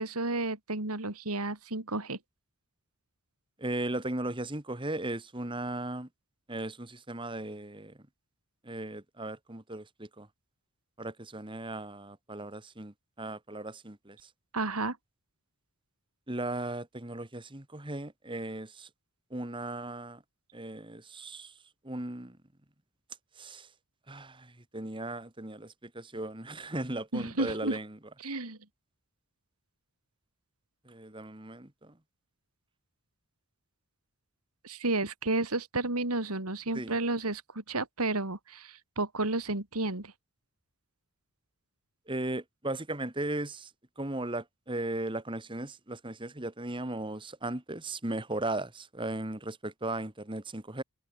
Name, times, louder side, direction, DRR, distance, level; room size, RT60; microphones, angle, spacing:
voice 1, 0.0-2.2 14.5-15.0 27.1-27.8 28.2-28.6 34.6-40.1, right 2 dB, 85° right, 3.4 m, -32 dB
voice 2, 3.6-6.1 6.5-8.0 8.6-10.3 11.0-14.3 16.3-18.9 19.3-20.2 20.5-21.5 21.8-22.4 23.4-23.7 24.1-28.0 30.8-32.0 36.7-37.0 42.1-43.7 44.0-50.8, right 2 dB, 20° right, 1.7 m, -37 dB
head